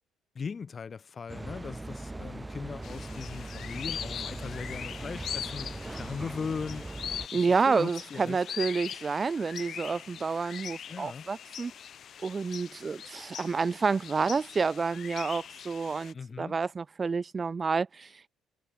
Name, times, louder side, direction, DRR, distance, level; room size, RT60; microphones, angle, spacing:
voice 1, 0.3-6.9 7.3-8.4 10.9-11.3 16.1-16.6, left 5 dB, 40° left, 2.8 m, -39 dB
sound 1, 1.3-7.3, right 2 dB, 15° right, 0.8 m, -40 dB
sound 2, 2.8-16.1, left 9 dB, 60° left, 1.2 m, -41 dB
voice 2, 7.3-11.7 12.2-18.3, right 4 dB, 35° right, 0.4 m, -29 dB
supercardioid pair, 70°, 0 cm